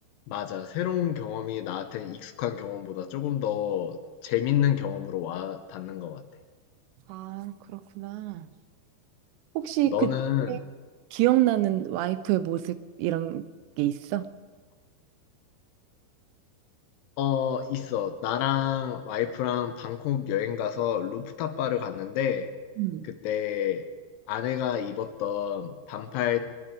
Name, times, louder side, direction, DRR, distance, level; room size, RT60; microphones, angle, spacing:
voice 1, 0.3-6.2 9.9-10.6 17.2-22.5 23.0-23.8 24.3-26.5, left 10 dB, 80° left, 2.6 m, -29 dB
voice 2, 7.1-8.5 9.6-10.1 10.5-10.6 11.1-13.4 13.8-14.3 22.8-23.1, right 15 dB, 85° right, 2.7 m, -27 dB
22.5 x 11.5 x 4.9 m
omnidirectional pair, 5.2 m